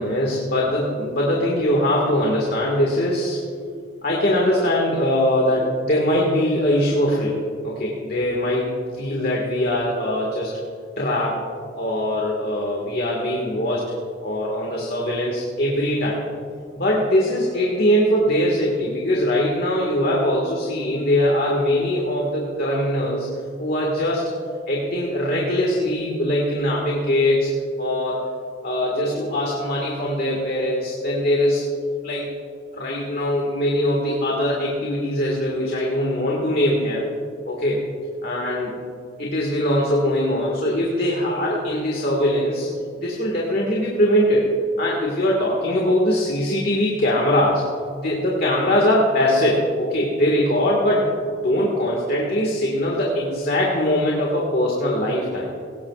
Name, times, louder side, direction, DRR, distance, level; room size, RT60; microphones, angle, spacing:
voice 1, 0.0-3.4 4.0-8.6 8.9-10.5 11.0-11.4 11.7-13.9 14.2-16.2 16.7-23.3 23.6-24.3 24.7-27.5 27.8-28.3 28.6-31.7 32.0-32.3 32.7-37.1 37.5-37.8 38.2-38.8 39.2-42.7 43.0-44.5 44.8-47.6 47.9-51.1 51.4-55.5, left 1 dB, 50° left, -2 dB, 1.8 m, -21 dB
17.5 x 17.5 x 2.4 m, 2.3 s
head